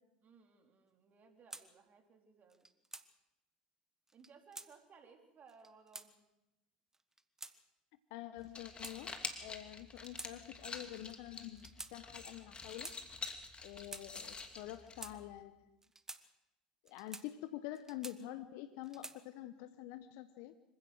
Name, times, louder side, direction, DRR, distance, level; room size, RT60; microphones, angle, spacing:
voice 1, 0.2-2.7 4.1-6.2, right 5 dB, 35° right, 4 dB, 3.9 m, -62 dB
sound 1, 1.5-1.7 2.5-3.1 4.1-4.7 5.5-6.1 6.9-7.5 8.4-9.3 10.0-10.3 10.6-10.8 11.6-11.9 12.6-13.0 13.7-14.1 14.7-15.2 15.8-16.2 16.9-17.3 17.7-18.4 18.8-19.2, right 2 dB, 10° right, 1.5 m, -50 dB
voice 2, 8.1-12.9 13.6-15.8 16.8-20.5, left 14 dB, 60° left, 12 dB, 1.0 m, -47 dB
sound 2, 8.4-15.4, left 4 dB, 20° left, 2.8 m, -47 dB
25.5 x 16.0 x 6.4 m, 0.95 s
hypercardioid pair, 75°, 4 cm